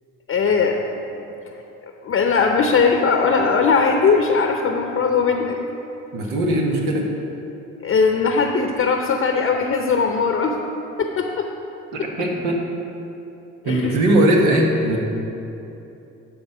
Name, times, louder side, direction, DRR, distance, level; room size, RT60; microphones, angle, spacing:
voice 1, 0.3-0.8 2.0-5.6 7.8-10.5 11.0-11.5 13.6-14.0, left 5 dB, 45° left, 3 dB, 0.7 m, -19 dB
voice 2, 6.1-7.1 11.9-12.6 13.6-15.0, right 1 dB, 85° right, 0 dB, 1.4 m, -19 dB
11.5 x 4.3 x 5.5 m, 2.9 s
supercardioid pair, 70°, 31 cm